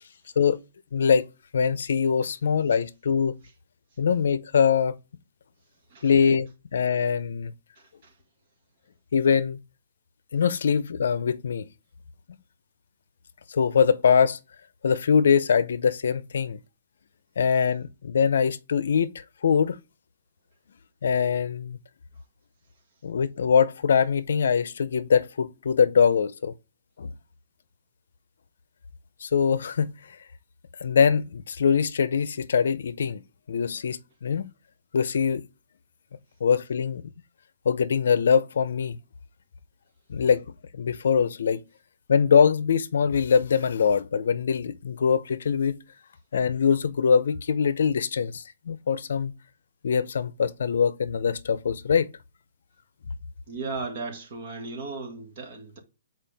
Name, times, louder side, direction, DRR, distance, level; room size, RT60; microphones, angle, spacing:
voice 1, 0.9-1.3 1.5-3.4 4.0-5.0 6.0-7.5 9.1-9.6 10.3-11.7 13.5-14.4 14.8-16.6 17.4-19.8 21.0-21.8 23.0-26.5 27.0-27.1 29.2-29.9 30.8-33.2 33.5-34.5 34.9-35.4 36.4-37.0 37.7-39.0 40.1-40.5 40.7-41.6 42.1-45.8 46.3-49.3 49.8-52.1, left 6 dB, 70° left, 0.6 m, -23 dB
voice 2, 53.5-55.8, right 3 dB, 40° right, 1.9 m, -35 dB
7.6 x 4.5 x 3.4 m
hypercardioid pair, 170°, 0 cm